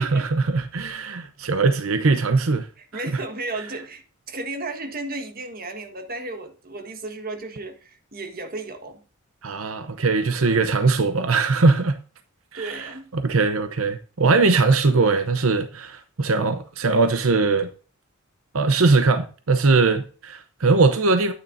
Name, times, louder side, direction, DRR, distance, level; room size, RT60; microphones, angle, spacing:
voice 1, 0.0-2.7 9.4-12.0 12.5-17.7 18.5-21.3, right 3 dB, 80° right, 0.8 m, -20 dB
voice 2, 2.8-9.0 12.5-13.1, right 2 dB, 45° right, 1.5 m, -34 dB
12.0 x 9.5 x 2.6 m
head